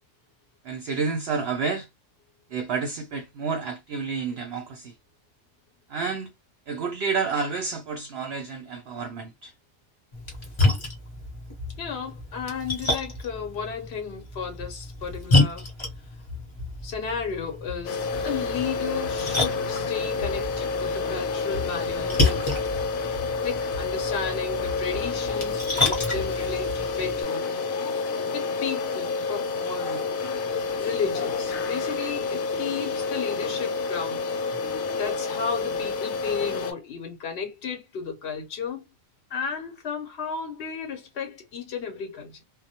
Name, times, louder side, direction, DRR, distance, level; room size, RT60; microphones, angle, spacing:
voice 1, 0.6-1.9 2.5-4.9 5.9-6.3 6.7-9.5, right 5 dB, 60° right, 0.7 m, -30 dB
Splash splatter, 10.1-27.2, left 2 dB, 25° left, 0.7 m, -29 dB
voice 2, 11.8-15.7 16.8-22.6 23.4-26.7 27.0-27.5 28.3-30.0 30.8-34.6 35.0-38.8 39.3-42.4, left 6 dB, 55° left, 0.8 m, -33 dB
sound 1, 17.8-36.7, left 4 dB, 85° left, 1.0 m, -29 dB
2.2 x 2.0 x 2.7 m
omnidirectional pair, 1.4 m